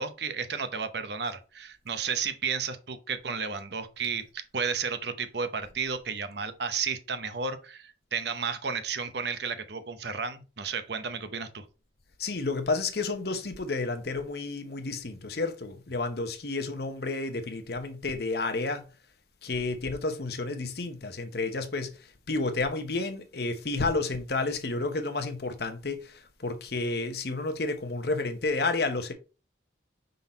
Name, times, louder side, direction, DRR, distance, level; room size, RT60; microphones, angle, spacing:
voice 1, 0.0-11.6, right 5 dB, 65° right, 0.8 m, -33 dB
voice 2, 12.2-18.9 19.4-29.1, left 3 dB, 55° left, 0.9 m, -31 dB
5.6 x 3.9 x 4.3 m
head